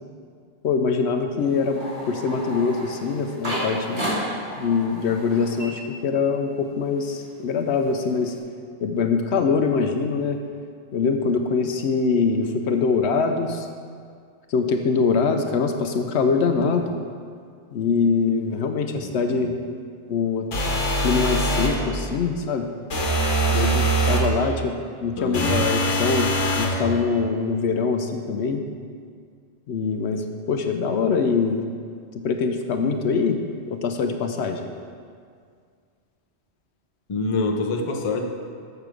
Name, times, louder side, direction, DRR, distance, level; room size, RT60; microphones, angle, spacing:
voice 1, 0.6-4.1 4.6-8.3 8.8-10.4 10.9-13.7 14.5-16.9 17.7-19.5 20.1-20.5 21.0-22.7 23.5-26.3 26.6-28.6 29.7-31.6 32.2-33.4 33.7-34.7, left 5 dB, 70° left, 5 dB, 0.8 m, -23 dB
sound 1, 1.4-6.5 6.8-8.4, equal, 60° right, 2.8 m, -33 dB
sound 2, 20.5-21.8 22.9-24.3 25.3-26.8, right 1 dB, 90° left, 1.5 m, -22 dB
voice 2, 25.2-25.7 37.1-38.2, left 3 dB, 35° left, 3 dB, 0.6 m, -26 dB
6.8 x 6.6 x 6.1 m, 2.1 s
omnidirectional pair, 1.2 m